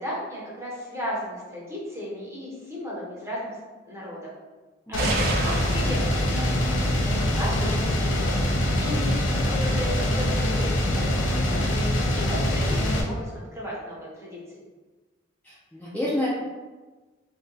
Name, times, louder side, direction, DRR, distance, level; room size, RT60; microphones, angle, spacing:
voice 1, 0.0-3.6 3.9-4.3 4.9-7.1 7.3-14.4, left 1 dB, 15° right, -6 dB, 0.8 m, -35 dB
sound 1, 4.9-13.0, left 1 dB, 75° left, 0.5 m, -24 dB
sound 2, 5.0-10.2, right 3 dB, 55° right, 0.4 m, -35 dB
voice 2, 15.4-16.3, left 1 dB, 10° left, -9 dB, 0.4 m, -28 dB
2.6 x 2.3 x 3.8 m, 1.3 s
head